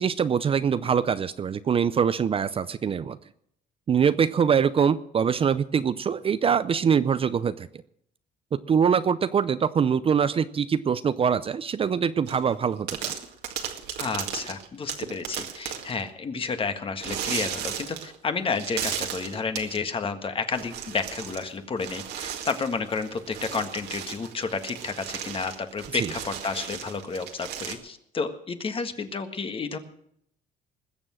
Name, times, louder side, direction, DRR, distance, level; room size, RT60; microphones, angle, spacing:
voice 1, 0.0-3.2 3.9-7.7 8.5-13.1 26.0-26.1, right 7 dB, 35° right, 14 dB, 0.6 m, -23 dB
sound 1, 12.3-12.5 12.9-16.0 17.0-18.2 18.5-19.8 20.5-21.5 21.8-27.8, right 9 dB, 75° right, 2.0 m, -35 dB
voice 2, 14.0-29.8, left 4 dB, 30° left, 8 dB, 1.6 m, -31 dB
20.5 x 7.2 x 7.5 m, 0.71 s
cardioid pair, 110°, 17 cm